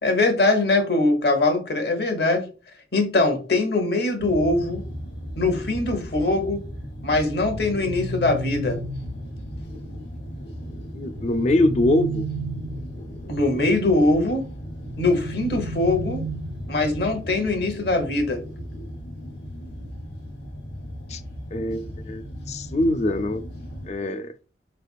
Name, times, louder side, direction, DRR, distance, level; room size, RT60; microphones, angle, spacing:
voice 1, 0.0-2.5 2.9-4.8 5.4-6.6 7.0-8.8 13.3-14.4 15.0-16.2 16.7-18.4, left 2 dB, 60° left, 1.0 m, -22 dB
sound 1, 4.2-23.9, equal, 80° left, 1.2 m, -36 dB
sound 2, 7.4-9.4 11.1-13.1 14.8-16.8, right 1 dB, 80° right, 0.5 m, -33 dB
voice 2, 10.9-12.3 21.1-21.2 21.5-23.4 23.9-24.3, left 1 dB, 40° left, 0.4 m, -23 dB
4.7 x 3.3 x 2.4 m
head